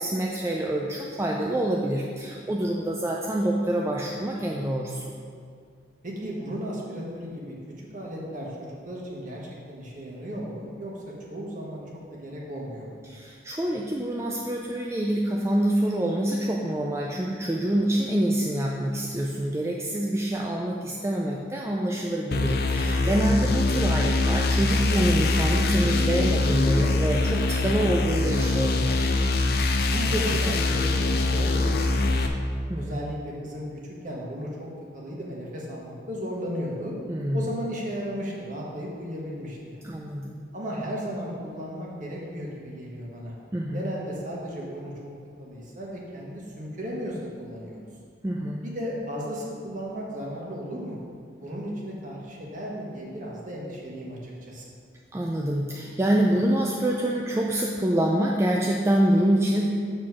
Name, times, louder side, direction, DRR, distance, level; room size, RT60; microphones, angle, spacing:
voice 1, 0.0-5.1 13.0-29.0 32.7-33.0 37.1-37.5 39.8-40.4 43.5-43.8 48.2-48.7 55.1-59.7, right 1 dB, 15° right, -2 dB, 0.4 m, -26 dB
voice 2, 6.0-11.8 12.1-13.0 23.3-23.5 29.9-32.4 32.7-34.7 34.9-36.9 37.3-39.8 40.5-43.3 43.7-44.9 45.4-47.8 48.6-51.0 51.4-54.6, equal, 45° right, -3 dB, 1.5 m, -35 dB
sound 1, 22.3-32.3, left 2 dB, 55° left, 0.5 m, -23 dB
7.5 x 4.3 x 6.0 m, 2.2 s
head